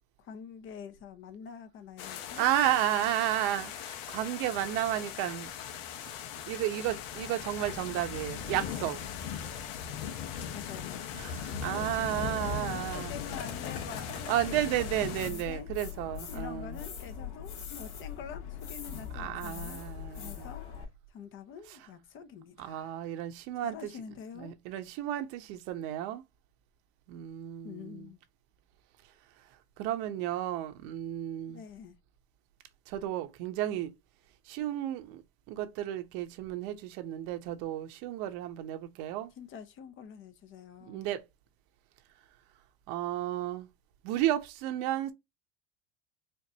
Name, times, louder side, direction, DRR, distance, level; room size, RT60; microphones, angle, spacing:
voice 1, 0.2-2.5 10.5-11.0 11.4-11.8 12.5-15.7 16.3-19.8 20.1-20.7 21.1-23.0 23.6-24.5 27.6-28.2 31.5-31.9 39.4-41.1, left 7 dB, 45° left, 0.7 m, -46 dB
sound 1, 2.0-15.3, left 8 dB, 85° left, 0.8 m, -39 dB
voice 2, 2.4-5.5 6.5-9.0 11.1-13.2 14.3-16.8 19.1-20.5 22.6-23.8 24.4-26.2 27.1-28.1 29.8-31.6 32.9-33.9 34.5-35.2 35.5-39.3 40.8-41.2 42.9-43.7 44.0-45.1, right 12 dB, 70° right, 0.9 m, -32 dB
sound 2, 12.8-20.8, left 8 dB, 70° left, 1.8 m, -42 dB
4.5 x 2.5 x 2.7 m
cardioid pair, 135°, 29 cm